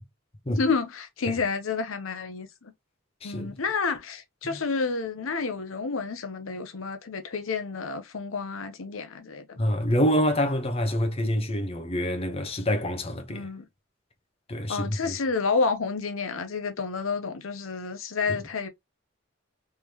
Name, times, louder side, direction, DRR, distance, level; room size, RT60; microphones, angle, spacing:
voice 1, 0.5-2.7 3.2-9.6 13.3-13.7 14.7-18.7, left 4 dB, 70° left, 0.7 m, -30 dB
voice 2, 3.2-3.6 4.5-4.6 9.6-13.5 14.5-15.1, equal, 30° left, 0.8 m, -26 dB
3.6 x 3.3 x 2.8 m
head